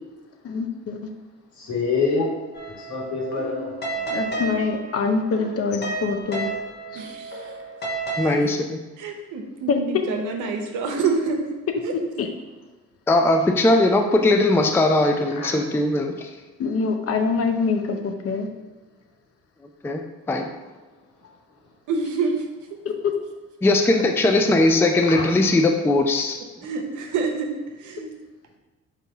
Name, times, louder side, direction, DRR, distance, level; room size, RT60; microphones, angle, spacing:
voice 1, 0.4-1.0 4.1-6.5 6.9-7.0 9.7-9.8 11.9-12.3 16.6-18.5 22.8-23.1, left 4 dB, 50° left, 5 dB, 0.6 m, -24 dB
voice 2, 1.6-2.4 2.8-4.2 15.4-15.5 25.1-25.2, left 4 dB, 70° left, -3 dB, 1.5 m, -26 dB
sound 1, 2.5-8.2, right 3 dB, 35° left, 1.0 m, -32 dB
voice 3, 6.9-7.5 8.2-8.4 9.0-11.5 11.8-11.9 21.9-22.8 23.9-24.0 26.6-27.5 27.8-28.1, right 4 dB, 85° right, 3 dB, 0.8 m, -27 dB
voice 4, 8.2-8.8 13.1-16.3 19.8-20.5 23.6-26.4, left 2 dB, 10° left, 4 dB, 0.3 m, -19 dB
4.1 x 2.7 x 4.6 m, 1.2 s
cardioid pair, 90°, 30 cm